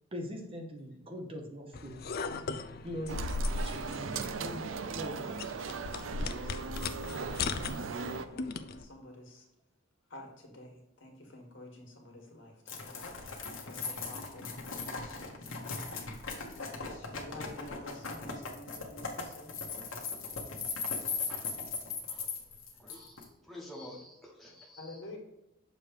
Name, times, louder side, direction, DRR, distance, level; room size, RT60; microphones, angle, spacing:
voice 1, 0.1-2.0 2.8-3.2 3.5-4.7 4.9-5.2, equal, 30° right, 2 dB, 0.9 m, -41 dB
sound 1, 1.7-8.8, left 3 dB, 50° left, 0.4 m, -38 dB
sound 2, 3.1-8.3, right 5 dB, 70° right, 0.5 m, -38 dB
voice 2, 4.9-9.4 10.1-13.0 13.6-15.4 15.9-16.0 16.6-19.5 24.8-25.2, left 1 dB, 65° left, 1 dB, 1.8 m, -50 dB
sound 3, 12.7-23.2, left 4 dB, 85° left, 1.2 m, -38 dB
voice 3, 22.8-25.2, left 1 dB, ahead, -3 dB, 1.3 m, -49 dB
6.8 x 3.2 x 4.6 m, 0.92 s
head